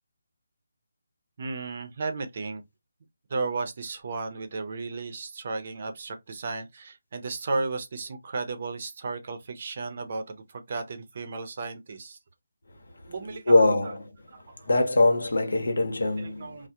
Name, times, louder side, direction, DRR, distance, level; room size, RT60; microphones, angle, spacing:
voice 1, 1.4-2.6 3.3-12.2 13.1-13.9 14.3-14.7 16.2-16.7, right 3 dB, 45° right, 0.5 m, -34 dB
voice 2, 13.5-14.0 14.7-16.5, left 2 dB, 80° left, 0.8 m, -22 dB
2.3 x 2.0 x 2.7 m
figure-of-eight pair, 160°, 0 cm